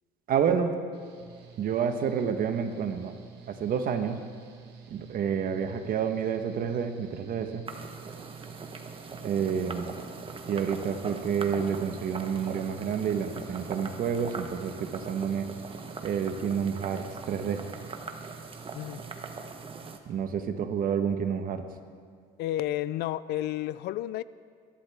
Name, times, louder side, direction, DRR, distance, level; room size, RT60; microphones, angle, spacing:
voice 1, 0.3-0.8 1.6-3.1 3.5-4.2 4.9-7.6 9.2-9.9 10.5-15.5 16.0-17.6 20.1-21.6, right 7 dB, 60° right, 7 dB, 1.2 m, -29 dB
Mechanical fan, 0.9-19.4, right 6 dB, 75° right, 1.6 m, -50 dB
sound 1, 7.7-20.0, right 4 dB, 30° right, 1.1 m, -41 dB
voice 2, 18.7-19.1 22.4-24.2, left 13 dB, 75° left, 18 dB, 0.4 m, -31 dB
22.0 x 11.5 x 3.5 m, 2.1 s
cardioid pair, 110°, 17 cm